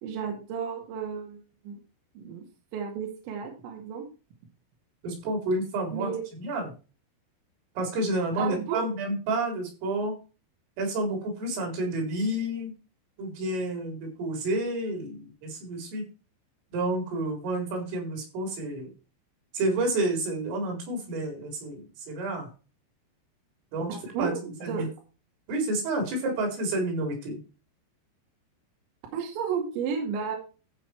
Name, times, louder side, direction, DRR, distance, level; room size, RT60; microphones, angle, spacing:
voice 1, 0.0-1.8 2.2-2.4 2.7-4.1 5.9-6.2 8.4-8.9 23.9-24.9 29.1-30.4, right 6 dB, 70° right, 2 dB, 4.3 m, -32 dB
voice 2, 5.0-6.1 6.4-6.7 7.8-10.1 10.8-12.7 13.2-16.0 16.7-18.9 19.5-22.5 23.7-24.3 24.6-24.9 25.5-27.4, right 2 dB, 90° right, 2 dB, 6.7 m, -30 dB
14.5 x 5.7 x 4.6 m, 0.33 s
omnidirectional pair, 5.6 m